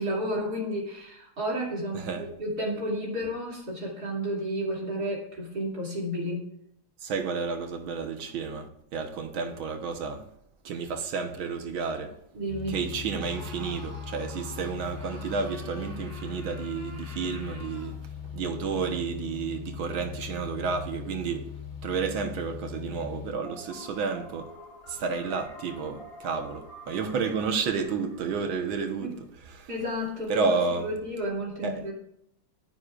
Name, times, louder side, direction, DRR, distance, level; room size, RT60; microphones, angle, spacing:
voice 1, 0.0-6.5 12.3-12.8 29.0-29.1 29.7-31.9, equal, 50° right, 3.3 m, -32 dB
voice 2, 1.9-2.3 7.0-10.3 10.7-12.2 12.7-18.0 18.2-21.5 21.8-24.5 24.9-29.1 29.5-29.7 30.3-30.9 31.6-31.8, right 5 dB, 90° right, 2.0 m, -31 dB
sound 1, 12.5-23.3, left 8 dB, 90° left, 2.4 m, -40 dB
Screaming, 13.2-18.0, right 1 dB, 30° right, 4.5 m, -48 dB
sound 2, 23.5-29.3, equal, 20° left, 4.6 m, -48 dB
23.5 x 9.8 x 2.5 m
omnidirectional pair, 2.1 m